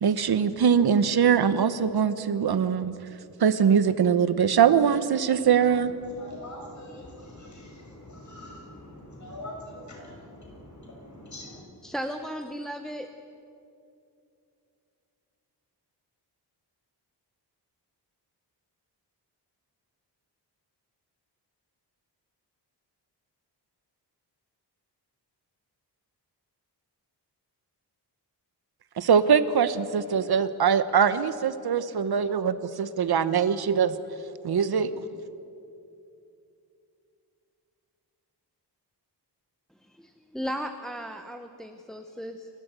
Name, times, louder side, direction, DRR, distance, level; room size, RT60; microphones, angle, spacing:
voice 1, 0.0-2.9 3.4-5.9 29.0-34.0 34.4-34.9, right 7 dB, 65° right, 13 dB, 1.1 m, -22 dB
voice 2, 5.4-11.6, left 1 dB, 45° left, -1 dB, 6.2 m, -44 dB
voice 3, 11.8-13.1 40.0-42.5, equal, ahead, 6 dB, 0.8 m, -35 dB
29.0 x 13.0 x 8.2 m, 2.6 s
wide cardioid pair, 140°, 41 cm